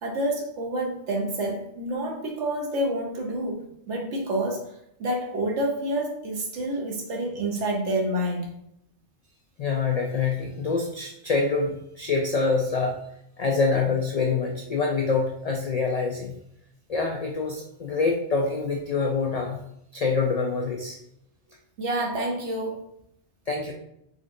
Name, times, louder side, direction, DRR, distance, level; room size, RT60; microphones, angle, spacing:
voice 1, 0.0-8.5 21.8-22.9, right 1 dB, 80° right, 0 dB, 1.2 m, -28 dB
voice 2, 9.6-13.0 13.4-16.3 16.9-19.6 19.9-21.0 23.5-23.7, left 4 dB, 65° left, 1 dB, 0.3 m, -25 dB
3.8 x 3.6 x 2.6 m, 0.75 s
omnidirectional pair, 1.2 m